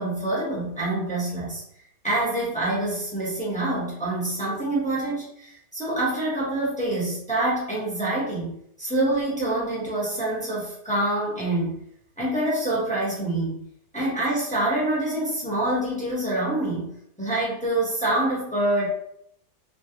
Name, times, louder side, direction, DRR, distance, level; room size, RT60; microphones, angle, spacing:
voice 1, 0.0-1.6 2.0-8.5 8.8-11.7 12.2-13.6 13.9-16.9 17.2-18.9, right 1 dB, 5° left, -7 dB, 0.7 m, -26 dB
3.2 x 2.4 x 2.8 m, 0.70 s
omnidirectional pair, 1.9 m